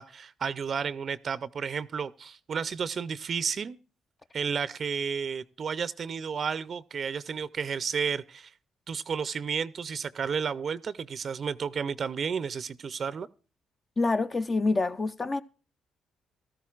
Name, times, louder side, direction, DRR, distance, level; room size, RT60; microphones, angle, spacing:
voice 1, 0.0-3.8 4.3-8.5 8.9-13.3, right 6 dB, 50° right, 0.5 m, -32 dB
voice 2, 14.0-15.4, left 3 dB, 30° left, 0.5 m, -26 dB
16.0 x 13.0 x 2.4 m
cardioid pair, 90°, 0 cm